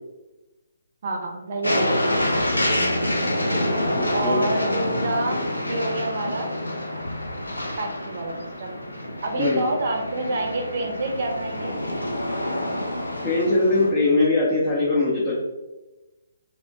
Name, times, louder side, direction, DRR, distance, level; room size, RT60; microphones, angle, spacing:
voice 1, 1.0-2.2 4.1-6.6 7.8-8.8 9.2-11.8, right 2 dB, 45° right, 2 dB, 0.5 m, -28 dB
sound 1, 1.6-13.9, left 1 dB, 80° left, 0.5 m, -27 dB
voice 2, 3.9-4.5 9.4-9.6 13.2-15.4, left 2 dB, 20° left, -7 dB, 0.6 m, -21 dB
2.8 x 2.1 x 2.6 m, 1.1 s
figure-of-eight pair, 140°, 0 cm